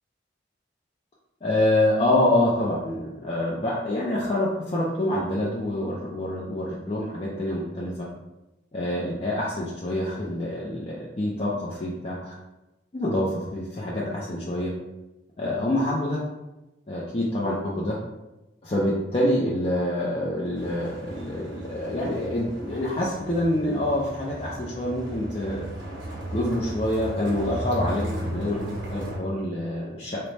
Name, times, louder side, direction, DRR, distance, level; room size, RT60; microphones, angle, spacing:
voice 1, 1.4-8.1 8.7-12.3 12.9-14.7 15.4-16.2 16.9-17.9 18.6-25.7 26.3-30.2, left 1 dB, 35° left, -6 dB, 0.5 m, -26 dB
sound 1, 20.6-29.2, right 1 dB, 90° right, 0.9 m, -35 dB
3.9 x 2.2 x 3.2 m, 0.99 s
head